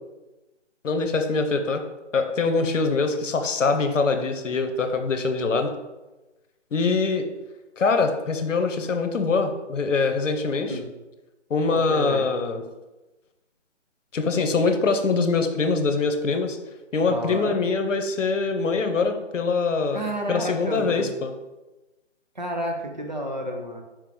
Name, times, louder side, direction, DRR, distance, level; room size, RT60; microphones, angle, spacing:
voice 1, 0.8-1.8 2.1-5.7 6.7-7.3 7.8-10.8 11.5-12.6 14.1-16.6 16.9-20.0 20.3-21.3, left 4 dB, 85° left, 6 dB, 0.8 m, -23 dB
voice 2, 10.5-10.8 11.7-12.3 17.0-17.6 19.9-21.1 22.4-23.8, equal, 40° right, 3 dB, 0.5 m, -30 dB
4.7 x 3.0 x 3.7 m, 1.1 s
hypercardioid pair, 170°, 37 cm